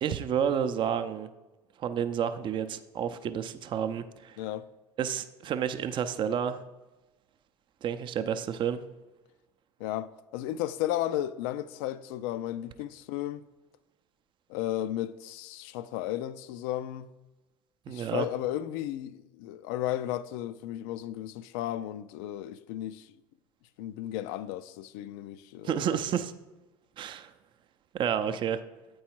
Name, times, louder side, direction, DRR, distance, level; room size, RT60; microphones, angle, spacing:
voice 1, 0.0-1.3 1.8-4.4 5.0-6.6 7.8-8.8 17.9-18.3 25.6-26.3 27.0-27.3 27.9-28.6, right 8 dB, 40° right, 0.5 m, -30 dB
voice 2, 9.8-13.4 14.5-17.1 17.9-23.1 23.8-26.0, left 13 dB, 65° left, 0.4 m, -34 dB
8.4 x 4.6 x 4.5 m
hypercardioid pair, 75°, 12 cm